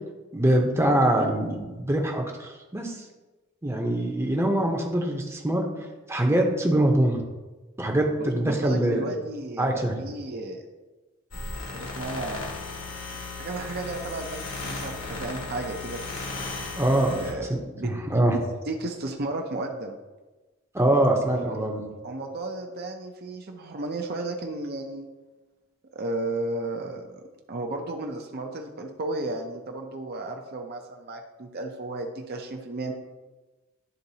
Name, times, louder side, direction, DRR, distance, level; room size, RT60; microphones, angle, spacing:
voice 1, 0.3-3.0 3.6-5.7 6.1-7.2 7.8-9.1 9.6-9.9 16.8-18.4 20.7-21.8, right 1 dB, 10° right, 1 dB, 0.7 m, -24 dB
voice 2, 8.5-10.7 11.7-12.4 13.4-16.0 17.1-17.9 18.3-18.4 18.7-20.0 21.3-21.6 22.0-25.1 25.9-27.2 27.5-32.9, right 2 dB, 45° right, 2 dB, 0.6 m, -33 dB
sound 1, 11.3-17.3, left 3 dB, 65° left, 1.2 m, -35 dB
10.5 x 3.9 x 2.8 m, 1.2 s
head